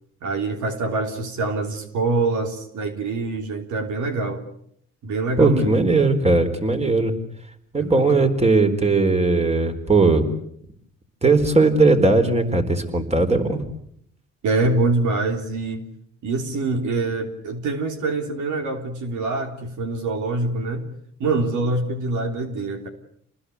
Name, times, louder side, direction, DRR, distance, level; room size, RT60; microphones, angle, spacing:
voice 1, 0.2-4.4 5.0-5.8 7.8-8.3 14.4-15.8 16.2-20.9 21.2-22.9, right 3 dB, 75° right, 5 dB, 3.5 m, -25 dB
voice 2, 5.4-7.1 7.7-10.2 11.2-13.6, right 3 dB, 20° right, 7 dB, 4.1 m, -18 dB
28.0 x 20.0 x 8.3 m, 0.70 s
cardioid pair, 90°, 30 cm